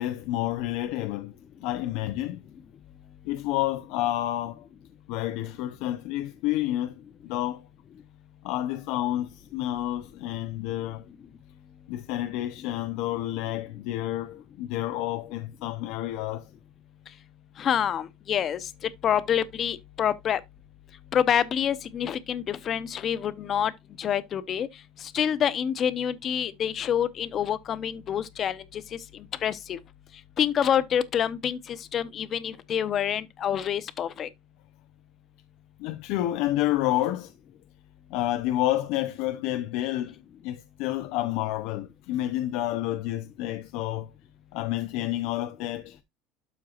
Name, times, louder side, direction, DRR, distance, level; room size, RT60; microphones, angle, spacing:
voice 1, 0.0-1.3 1.6-2.4 3.3-4.7 5.1-6.9 7.2-7.6 8.4-11.1 11.9-16.5 35.8-37.3 38.1-40.1 40.4-44.1 44.5-46.0, left 14 dB, 70° left, 0.7 m, -29 dB
voice 2, 17.6-18.7 19.0-20.4 21.1-23.7 24.0-24.7 25.0-29.0 29.4-29.8 30.4-34.3, left 9 dB, 40° left, 0.8 m, -27 dB
12.0 x 4.6 x 2.5 m
supercardioid pair, 130°, 0 cm